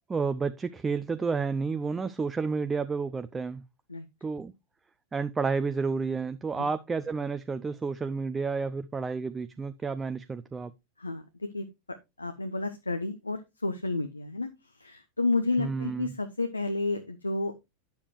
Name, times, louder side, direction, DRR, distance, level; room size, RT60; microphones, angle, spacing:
voice 1, 0.1-3.6 4.2-4.5 5.1-10.7 15.6-16.1, right 4 dB, 15° right, 0.6 m, -31 dB
voice 2, 11.0-11.6 12.2-14.5 14.8-17.6, left 3 dB, 80° left, 0.8 m, -31 dB
10.0 x 7.1 x 3.1 m
figure-of-eight pair, 90°, 0 cm